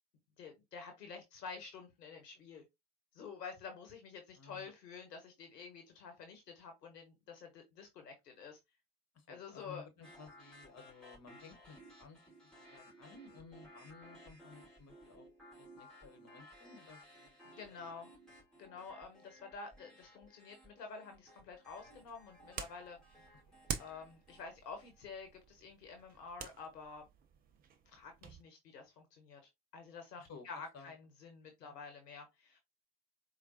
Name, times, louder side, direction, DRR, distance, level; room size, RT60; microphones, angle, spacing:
voice 1, 0.4-2.6 3.1-8.6 9.3-9.8 17.4-18.1 18.6-23.2 23.8-27.1 27.9-29.4 29.7-32.6, left 5 dB, 75° left, 0.9 m, -49 dB
voice 2, 4.3-4.7 9.1-12.2 12.6-15.3 15.6-18.1 18.7-18.9 30.2-30.5 30.7-30.9 31.6-31.7, left 4 dB, 30° left, 1.3 m, -56 dB
sound 1, 10.0-25.0, equal, ahead, 2.3 m, -59 dB
sound 2, 21.7-28.4, right 7 dB, 20° right, 0.3 m, -48 dB
4.3 x 2.3 x 2.7 m
figure-of-eight pair, 60°, 49 cm